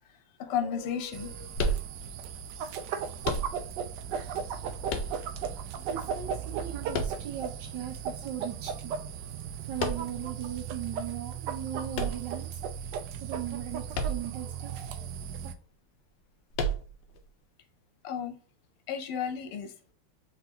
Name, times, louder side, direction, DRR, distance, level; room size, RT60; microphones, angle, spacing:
voice 1, 0.4-1.9 18.0-18.4 18.9-19.7, left 8 dB, 85° left, 1.7 m, -33 dB
sound 1, 1.1-15.5, right 7 dB, 80° right, 1.0 m, -36 dB
sound 2, 1.5-2.3 3.2-3.9 4.9-5.6 6.9-7.7 9.8-10.3 11.9-12.8 13.9-14.5 14.8-14.9 16.5-17.2, equal, 70° left, 1.2 m, -32 dB
voice 2, 5.9-8.9 9.6-12.6 13.2-15.0, right 9 dB, 60° right, 1.4 m, -38 dB
4.5 x 3.8 x 2.8 m
omnidirectional pair, 2.4 m